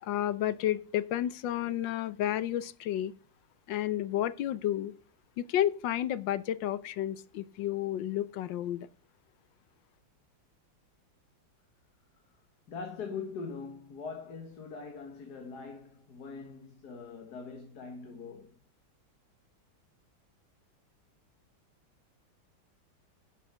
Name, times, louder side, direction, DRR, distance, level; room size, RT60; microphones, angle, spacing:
voice 1, 0.0-3.1 3.7-4.9 5.4-8.9, left 12 dB, 75° left, 1.4 m, -31 dB
voice 2, 12.7-18.5, left 5 dB, 55° left, 2.0 m, -42 dB
11.5 x 6.8 x 4.9 m
omnidirectional pair, 2.1 m